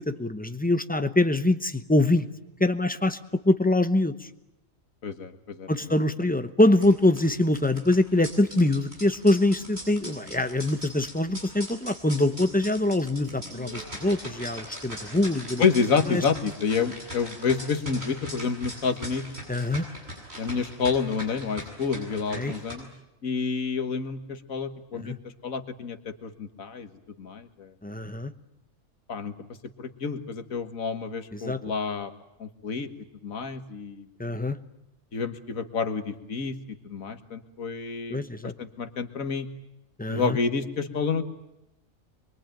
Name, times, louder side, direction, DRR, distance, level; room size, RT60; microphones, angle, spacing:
voice 1, 0.0-2.2 2.6-4.3 5.7-15.6 16.1-16.2 19.5-19.9 22.3-22.5 24.9-25.2 27.8-28.3 31.3-31.6 34.2-34.6 38.1-38.5 40.0-40.4, left 1 dB, 10° left, 9 dB, 0.8 m, -24 dB
voice 2, 5.0-5.7 15.6-19.2 20.4-22.9 23.2-25.2 25.4-26.9 27.2-27.7 29.1-29.3 29.8-32.1 32.4-32.9 33.2-34.1 35.1-39.5 40.1-41.2, left 5 dB, 80° left, 8 dB, 1.9 m, -29 dB
sound 1, 6.7-22.7, equal, 50° right, 8.1 m, -41 dB
25.0 x 23.0 x 9.1 m, 0.91 s
omnidirectional pair, 1.4 m